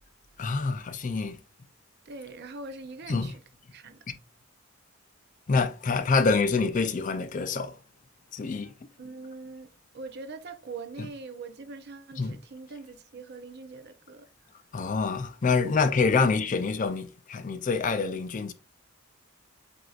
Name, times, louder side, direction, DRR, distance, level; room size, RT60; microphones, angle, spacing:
voice 1, 0.4-1.4 3.1-3.3 4.1-4.2 5.5-7.8 8.3-8.7 11.0-11.1 12.2-12.4 14.7-18.5, left 4 dB, 35° left, 0.4 m, -26 dB
voice 2, 2.1-3.4 3.7-4.0 9.0-9.7 9.9-14.3, right 3 dB, 50° right, 0.5 m, -42 dB
7.6 x 2.6 x 2.4 m
head